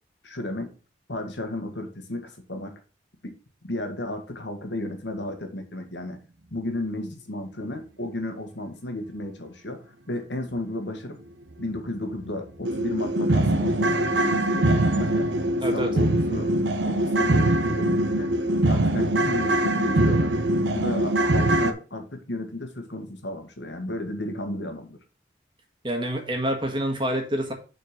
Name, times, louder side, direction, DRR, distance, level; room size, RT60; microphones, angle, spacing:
voice 1, 0.2-0.7 1.1-2.8 3.2-3.3 3.6-6.2 6.5-11.2 11.6-15.3 15.6-16.5 16.8-25.0, left 1 dB, 90° left, 6 dB, 1.6 m, -33 dB
sound 1, 11.7-11.8 12.2-12.3 12.6-21.7, right 1 dB, 90° right, 0.9 m, -22 dB
voice 2, 25.8-27.5, right 1 dB, 25° right, 3 dB, 1.6 m, -27 dB
6.7 x 4.4 x 5.8 m, 0.35 s
head